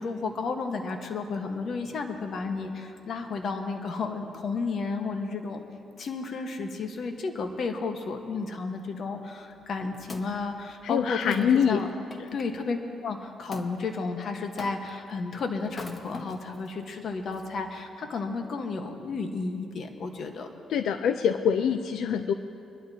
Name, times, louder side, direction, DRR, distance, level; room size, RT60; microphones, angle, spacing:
voice 1, 0.0-5.6 6.0-11.9 12.3-20.5, left 4 dB, 55° left, 5 dB, 1.3 m, -32 dB
Wood, 9.5-12.5 13.5-13.7 14.6-15.1 15.7-16.7 17.3-17.4, left 3 dB, 35° left, 1.0 m, -44 dB
voice 2, 10.8-11.8 12.2-12.3 20.7-22.3, left 7 dB, 75° left, 9 dB, 0.5 m, -24 dB
23.0 x 11.5 x 2.9 m, 2.5 s
cardioid pair, 90°, 0 cm